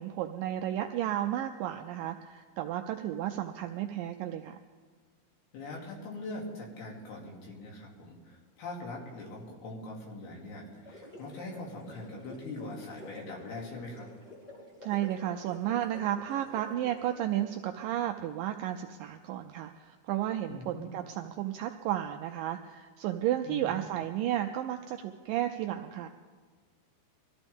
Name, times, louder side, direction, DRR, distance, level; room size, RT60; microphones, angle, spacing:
voice 1, 0.0-4.6 14.8-26.1, right 12 dB, 85° right, 5 dB, 2.0 m, -33 dB
voice 2, 5.5-14.1 20.5-20.9 23.5-23.7, left 2 dB, 75° left, -2 dB, 4.6 m, -42 dB
sound 1, 10.7-17.5, left 1 dB, 10° left, 4.0 m, -50 dB
23.0 x 14.5 x 3.5 m, 1.5 s
omnidirectional pair, 4.5 m